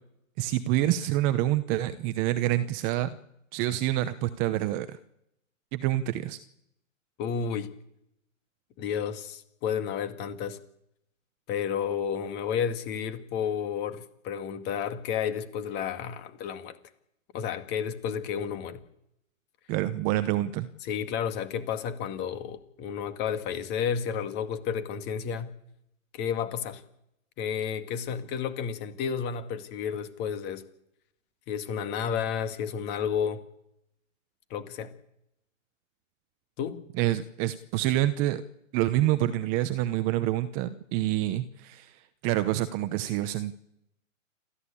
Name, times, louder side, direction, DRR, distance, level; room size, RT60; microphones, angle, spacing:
voice 1, 0.4-3.1 3.5-5.0 5.7-6.4 19.7-20.7 36.9-38.4 38.7-43.5, right 14 dB, 20° right, 12 dB, 0.8 m, -27 dB
voice 2, 7.2-7.7 8.8-10.6 11.5-16.8 17.3-18.8 20.8-25.5 26.1-26.8 27.4-30.6 31.5-33.4 34.5-34.9 36.6-36.8, left 7 dB, 25° left, 10 dB, 2.0 m, -31 dB
28.0 x 14.5 x 8.6 m, 0.82 s
hypercardioid pair, 140°, 40 cm